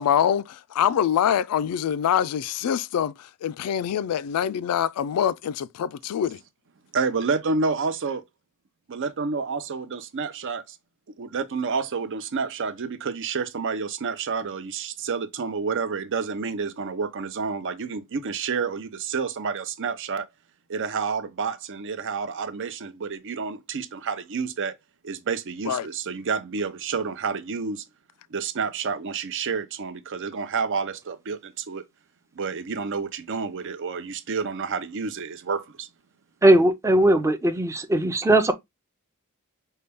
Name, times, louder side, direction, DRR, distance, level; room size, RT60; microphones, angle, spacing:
voice 1, 0.0-3.1 3.4-6.4 25.7-25.9, left 9 dB, 85° left, 0.3 m, -24 dB
voice 2, 6.9-8.2 8.9-10.8 11.2-20.3 20.7-24.7 25.0-27.9 28.3-31.8 32.4-35.9, right 5 dB, 60° right, 0.6 m, -29 dB
voice 3, 36.4-38.5, right 1 dB, 15° right, 0.5 m, -19 dB
5.5 x 2.2 x 3.4 m
head